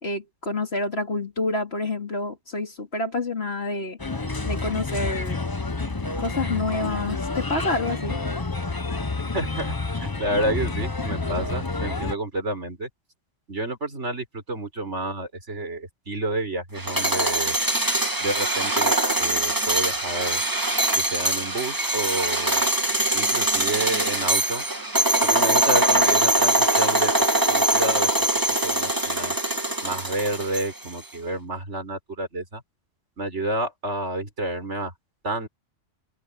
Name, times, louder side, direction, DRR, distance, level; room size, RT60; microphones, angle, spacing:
voice 1, 0.0-4.0 4.4-5.4 6.2-8.2, left 2 dB, 60° left, 3.5 m, -28 dB
Bird, 4.0-12.1, left 3 dB, 20° left, 0.9 m, -29 dB
voice 2, 9.3-12.9 13.5-17.6 18.2-20.4 20.9-22.6 23.1-24.6 25.2-27.1 27.5-28.1 28.5-29.4 29.8-32.6 33.2-34.9 35.2-35.5, right 1 dB, 70° right, 5.2 m, -29 dB
sound 1, 16.8-30.9, right 1 dB, 15° right, 2.0 m, -23 dB
omnidirectional pair, 1.2 m